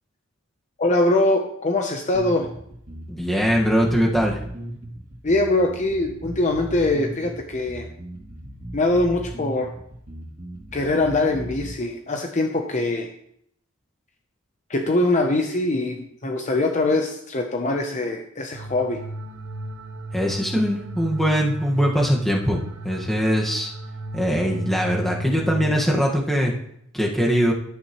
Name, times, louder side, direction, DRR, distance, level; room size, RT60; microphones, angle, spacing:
voice 1, 0.8-2.5 5.2-7.9 8.7-9.7 10.7-13.1 14.7-19.0, left 2 dB, 35° left, 3 dB, 0.8 m, -22 dB
sound 1, 2.1-11.7, right 1 dB, 35° right, 2.8 m, -37 dB
voice 2, 3.1-4.4 20.1-23.7 24.1-26.5 26.9-27.5, equal, ahead, -2 dB, 1.6 m, -22 dB
sound 2, 18.5-26.0, right 1 dB, 65° right, 1.0 m, -34 dB
11.5 x 8.7 x 3.1 m, 0.71 s
head